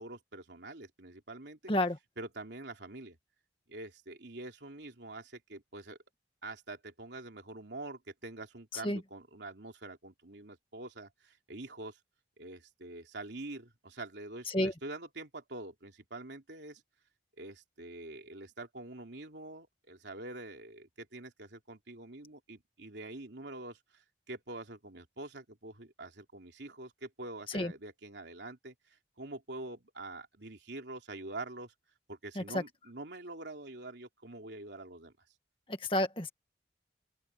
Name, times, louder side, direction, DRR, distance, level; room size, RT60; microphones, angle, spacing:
voice 1, 0.0-1.7 2.2-3.2 3.7-6.0 6.4-12.0 12.4-16.8 17.4-28.7 29.2-31.7 32.1-35.1, right 2 dB, 80° right, 3.2 m, -45 dB
voice 2, 35.7-36.3, left 1 dB, 30° left, 1.9 m, -30 dB
open air
head